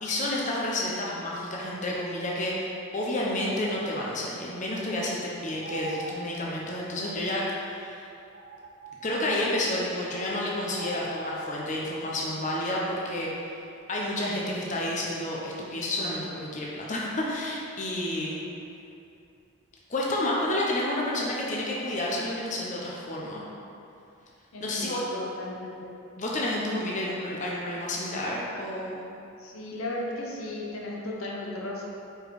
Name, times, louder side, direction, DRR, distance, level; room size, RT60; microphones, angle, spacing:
voice 1, 0.0-8.0 9.0-13.3 13.9-18.4 19.9-23.4 24.6-25.0 26.2-29.0, left 1 dB, 35° left, -4 dB, 0.7 m, -30 dB
sound 1, 3.3-3.8 5.6-6.2 7.6-7.7 8.3-9.2 10.1-10.3 10.7-11.6, right 2 dB, 40° right, 0.4 m, -41 dB
voice 2, 24.5-25.9 29.4-31.8, left 1 dB, 90° left, -2 dB, 1.0 m, -35 dB
5.0 x 4.6 x 4.7 m, 2.7 s
head